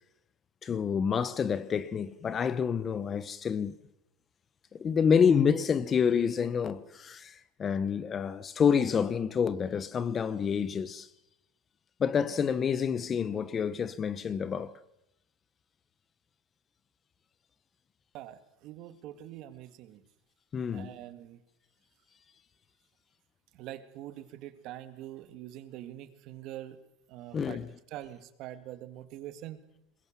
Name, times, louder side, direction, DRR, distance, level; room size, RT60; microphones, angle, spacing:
voice 1, 0.6-3.8 4.7-11.1 12.0-14.7 20.5-20.9 27.3-27.7, left 7 dB, 25° left, 0.9 m, -28 dB
voice 2, 18.1-20.0 20.7-21.4 23.5-26.8 27.1-27.6 27.9-29.6, right 13 dB, 55° right, 2.0 m, -44 dB
22.0 x 21.5 x 7.5 m
supercardioid pair, 140°, 0 cm